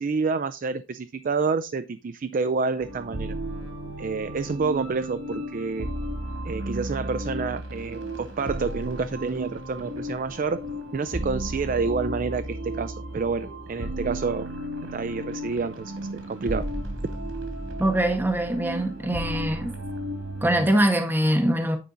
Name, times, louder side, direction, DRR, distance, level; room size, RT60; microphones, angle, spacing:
voice 1, 0.0-3.4 4.0-5.9 6.4-10.7 10.9-14.5 14.9-16.7, right 4 dB, 40° right, 0.3 m, -28 dB
sound 1, 2.8-20.7, right 1 dB, 70° right, 2.3 m, -34 dB
voice 2, 17.8-19.7 20.4-21.8, right 1 dB, 10° right, 0.7 m, -23 dB
9.5 x 5.0 x 3.8 m
head